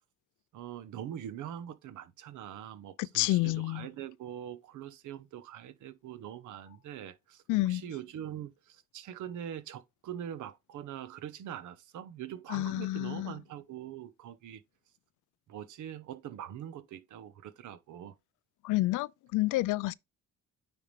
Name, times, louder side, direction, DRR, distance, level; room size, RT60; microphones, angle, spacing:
voice 1, 0.5-14.6 15.5-18.1, right 10 dB, 80° right, 1.0 m, -43 dB
voice 2, 3.0-3.9 7.5-7.8 12.5-13.3 18.6-19.9, left 18 dB, 85° left, 0.5 m, -29 dB
9.2 x 3.6 x 3.2 m
cardioid pair, 90°, 30 cm